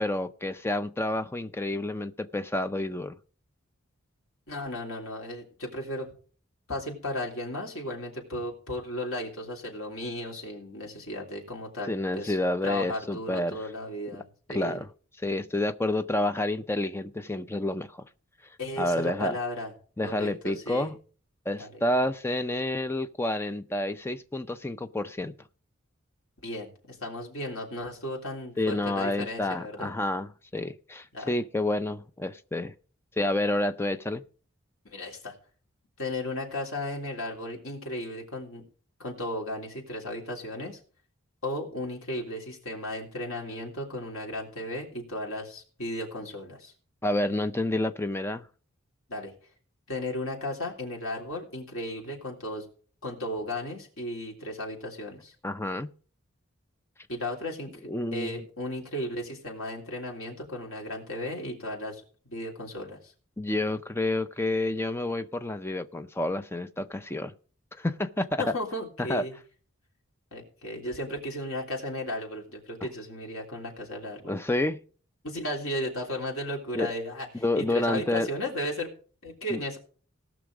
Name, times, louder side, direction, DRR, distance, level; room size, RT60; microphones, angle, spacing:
voice 1, 0.0-3.2 11.9-13.6 14.5-14.9 15.2-18.1 18.8-19.4 20.0-21.0 21.5-25.3 28.6-32.7 33.2-34.2 47.0-48.5 55.4-55.9 57.9-58.4 63.4-67.3 67.8-68.4 69.0-69.2 74.3-74.8 76.7-76.9 77.4-78.3 79.5-79.6, left 1 dB, 10° left, 0.5 m, -29 dB
voice 2, 4.5-6.1 6.7-12.4 12.6-14.8 18.6-19.7 20.0-20.9 21.6-21.8 26.4-29.9 31.1-31.3 34.8-35.3 36.0-38.6 39.0-40.8 41.4-46.7 49.1-49.3 49.9-52.6 53.0-55.3 57.1-57.7 58.1-63.1 68.4-69.4 70.3-74.3 75.2-79.8, left 1 dB, 80° left, 3.3 m, -35 dB
18.0 x 6.2 x 4.9 m
head